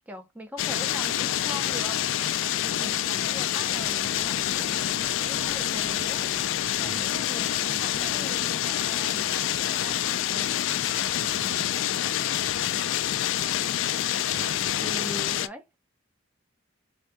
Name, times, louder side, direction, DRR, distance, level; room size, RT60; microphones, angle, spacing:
voice 1, 0.1-2.0 2.6-6.3 6.8-10.6 14.4-14.5 14.8-15.7, right 1 dB, 10° right, 0.6 m, -41 dB
sound 1, 0.6-15.5, left 11 dB, 65° left, 0.3 m, -27 dB
sound 2, 3.7-10.5, left 1 dB, 50° right, 2.2 m, -52 dB
voice 2, 11.0-11.8 12.4-12.6 14.0-15.1, right 5 dB, 70° right, 0.3 m, -46 dB
4.0 x 2.7 x 3.4 m
head